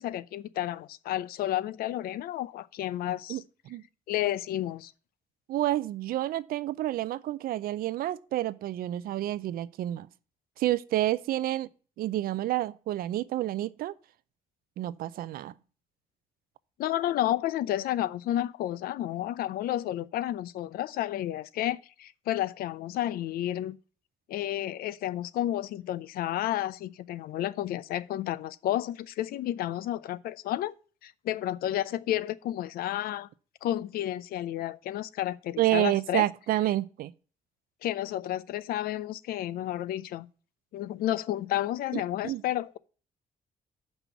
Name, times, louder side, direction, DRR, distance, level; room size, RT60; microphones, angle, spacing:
voice 1, 0.0-3.4 4.1-4.9 16.8-23.8 24.3-30.7 31.0-33.3 33.6-36.2 37.8-40.3 40.7-42.8, left 13 dB, 80° left, 0.5 m, -31 dB
voice 2, 3.3-3.8 5.5-10.1 10.6-11.7 12.0-13.9 14.8-15.5 35.6-37.1 41.9-42.4, right 14 dB, 80° right, 0.5 m, -29 dB
6.0 x 5.5 x 6.9 m
cardioid pair, 90°, 15 cm